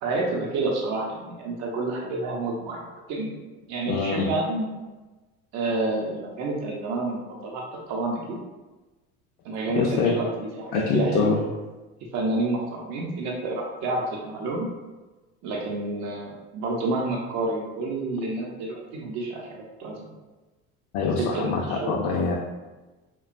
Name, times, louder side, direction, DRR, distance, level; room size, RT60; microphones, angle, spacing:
voice 1, 0.0-2.8 3.1-3.3 3.7-4.7 5.5-7.6 7.9-8.2 9.4-10.3 10.6-11.3 12.1-14.7 15.4-20.1 21.2-22.1, right 2 dB, 55° right, -2 dB, 0.6 m, -29 dB
voice 2, 3.9-4.3 9.7-10.2 10.7-11.4 20.9-22.3, left 5 dB, 70° left, -2 dB, 0.5 m, -24 dB
2.8 x 2.2 x 2.4 m, 1.2 s
cardioid pair, 130°, 34 cm